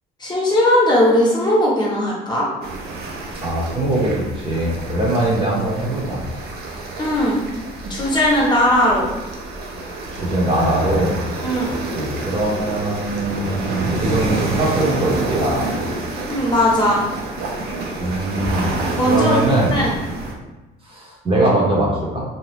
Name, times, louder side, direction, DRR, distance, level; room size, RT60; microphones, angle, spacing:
voice 1, 0.2-2.5 7.0-7.4 7.9-9.1 11.4-11.7 16.3-17.0 19.0-19.4 19.7-19.9, left 1 dB, 25° left, -4 dB, 0.9 m, -18 dB
sound 1, 2.6-20.3, right 2 dB, 70° right, 0.6 m, -28 dB
voice 2, 3.4-6.2 10.1-11.1 11.6-15.7 18.0-19.7 20.8-22.2, right 1 dB, 30° right, -4 dB, 0.8 m, -21 dB
2.7 x 2.3 x 3.3 m, 1.1 s
cardioid pair, 110°, 17 cm